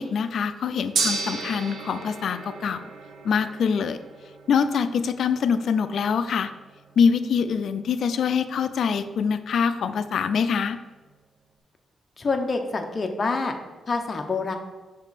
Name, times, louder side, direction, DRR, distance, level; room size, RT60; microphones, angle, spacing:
voice 1, 0.0-2.8 3.2-4.0 4.5-6.5 7.0-10.8, left 6 dB, 65° left, 10 dB, 0.4 m, -24 dB
Gong, 0.9-11.2, right 4 dB, 65° right, 0.9 m, -36 dB
voice 2, 12.2-13.5 13.9-14.6, left 3 dB, 35° left, 4 dB, 0.8 m, -26 dB
6.0 x 5.2 x 4.1 m, 1.2 s
cardioid pair, 125°, 0 cm